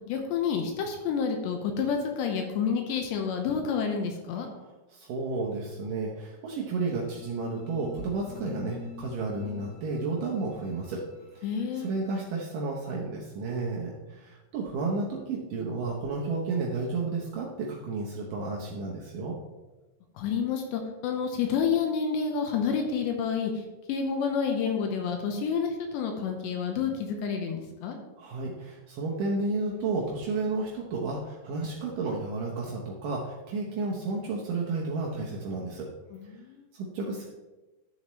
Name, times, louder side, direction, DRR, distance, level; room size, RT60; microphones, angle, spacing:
voice 1, 0.1-4.5 11.4-11.9 20.2-23.5 23.9-28.0 36.1-36.7, left 6 dB, 80° left, 3 dB, 2.9 m, -29 dB
voice 2, 4.6-11.0 11.3-11.5 11.7-19.4 28.2-35.9 36.7-37.2, right 3 dB, 80° right, -3 dB, 1.9 m, -32 dB
sound 1, 7.0-12.2, left 3 dB, 60° left, 3.1 m, -45 dB
12.0 x 7.2 x 3.1 m, 1.1 s
omnidirectional pair, 5.3 m